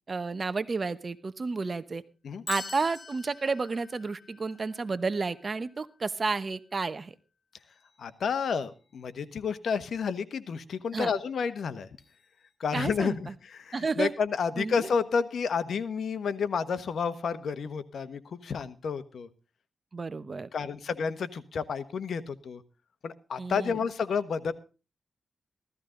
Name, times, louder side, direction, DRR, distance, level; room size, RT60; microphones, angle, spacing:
voice 1, 0.1-2.0 2.5-7.1 10.9-11.1 12.7-13.3 13.7-14.1 14.6-14.9 19.9-20.5 23.4-23.8, right 4 dB, 45° right, 14 dB, 1.1 m, -31 dB
sound 1, 2.5-6.5 7.5-8.4 8.6-9.1 12.0-12.5, left 4 dB, 50° left, 2.4 m, -47 dB
voice 2, 8.0-11.9 12.6-19.3 20.5-22.6 23.0-24.5, left 6 dB, 80° left, 13 dB, 1.2 m, -30 dB
15.5 x 14.0 x 3.9 m, 0.34 s
cardioid pair, 65°, 0 cm